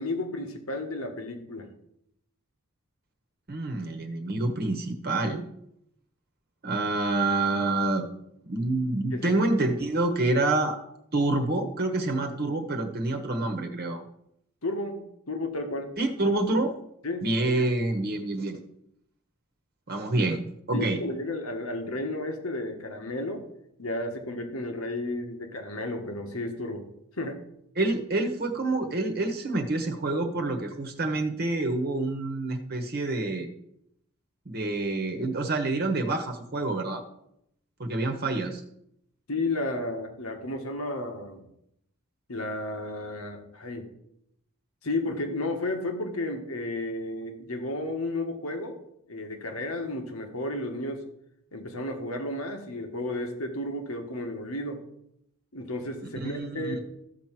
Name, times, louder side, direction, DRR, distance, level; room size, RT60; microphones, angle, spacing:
voice 1, 0.0-1.7 9.1-9.4 14.6-15.9 17.0-17.3 20.7-23.4 23.8-26.9 27.2-27.4 39.3-41.4 42.3-43.9 44.8-48.8 49.1-51.0 51.5-54.8 55.5-56.8, left 2 dB, 90° left, 4 dB, 1.8 m, -32 dB
voice 2, 3.5-5.4 6.6-8.0 8.5-10.8 11.1-14.0 16.0-16.7 17.2-18.6 19.9-20.4 20.7-21.0 27.8-33.5 34.5-37.0 37.8-38.6 56.2-56.8, right 2 dB, 45° right, 4 dB, 1.1 m, -27 dB
13.5 x 4.6 x 7.5 m, 0.77 s
head